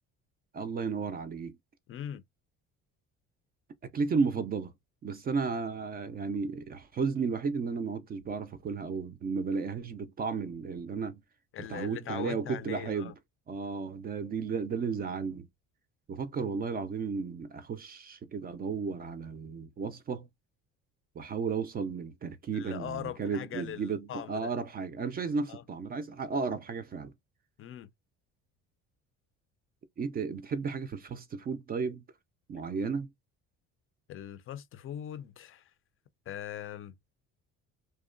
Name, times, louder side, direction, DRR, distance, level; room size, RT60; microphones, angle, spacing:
voice 1, 0.5-1.6 3.9-4.7 5.0-11.2 11.6-13.1 13.5-15.5 16.1-20.3 21.2-27.1 30.0-32.0 32.5-33.1, right 5 dB, 30° right, 0.4 m, -33 dB
voice 2, 1.9-2.2 11.5-13.1 22.5-24.5 25.5-25.6 27.6-27.9 34.1-35.6 36.3-36.9, left 10 dB, 40° left, 0.4 m, -40 dB
2.6 x 2.1 x 2.5 m
cardioid pair, 115°, 32 cm